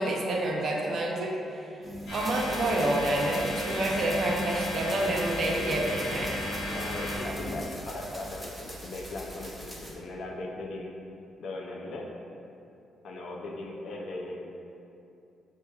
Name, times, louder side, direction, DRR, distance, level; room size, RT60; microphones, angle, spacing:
voice 1, 0.0-1.7 2.1-6.4, right 1 dB, 55° right, -1 dB, 0.5 m, -28 dB
sound 1, 1.8-7.7, right 1 dB, 10° right, 1.0 m, -39 dB
sound 2, 2.1-7.2, left 1 dB, 85° left, 0.9 m, -36 dB
sound 3, 2.1-9.9, equal, 10° left, 0.6 m, -43 dB
voice 2, 6.6-10.9 11.4-12.1 13.0-14.4, left 2 dB, 65° left, 0 dB, 0.4 m, -38 dB
5.4 x 2.1 x 2.3 m, 2.7 s
cardioid pair, 90°, 0 cm